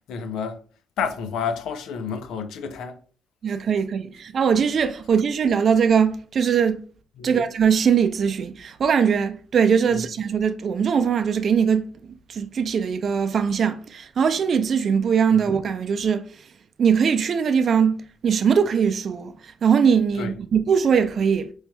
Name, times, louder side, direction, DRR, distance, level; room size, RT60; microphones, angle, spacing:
voice 1, 0.1-0.6 1.0-3.0 7.2-7.5 9.9-10.1 15.4-15.5 20.2-20.3, left 6 dB, 80° left, 0.5 m, -30 dB
voice 2, 3.4-6.8 7.2-11.8 12.3-16.2 16.8-21.5, right 7 dB, 55° right, 0.4 m, -21 dB
4.3 x 3.1 x 2.2 m
cardioid pair, 90°, 0 cm